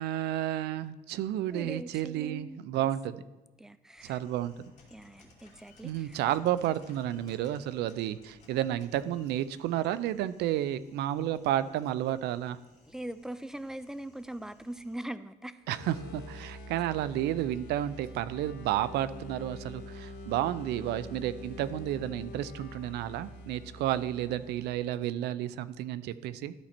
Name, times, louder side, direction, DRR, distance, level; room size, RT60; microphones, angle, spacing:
voice 1, 0.0-3.2 4.0-4.5 5.8-12.6 15.7-26.5, right 12 dB, 80° right, 15 dB, 0.4 m, -31 dB
voice 2, 1.5-2.9 3.6-4.2 4.9-6.2 12.9-15.6, right 1 dB, 5° right, 13 dB, 0.3 m, -41 dB
sound 1, 4.0-15.1, left 2 dB, 40° left, 2.2 m, -61 dB
sound 2, 15.6-25.1, left 1 dB, 80° left, 1.3 m, -46 dB
12.5 x 4.2 x 4.3 m, 1.1 s
cardioid pair, 110°, 17 cm